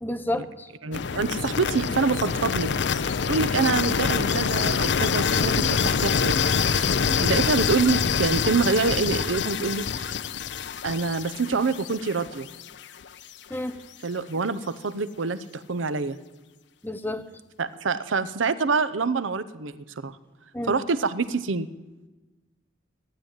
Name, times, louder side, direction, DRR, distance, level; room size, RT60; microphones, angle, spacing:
voice 1, 0.0-0.7 5.4-5.5 13.5-13.8 16.8-17.2 20.5-20.8, left 1 dB, 10° left, 10 dB, 0.7 m, -30 dB
voice 2, 0.8-2.7 3.0-10.2 10.8-12.5 14.0-16.2 17.6-20.2 20.7-21.7, right 4 dB, 90° right, 14 dB, 0.7 m, -26 dB
sound 1, 0.9-12.8, left 6 dB, 65° left, 0.5 m, -25 dB
15.0 x 11.0 x 8.9 m, 1.2 s
head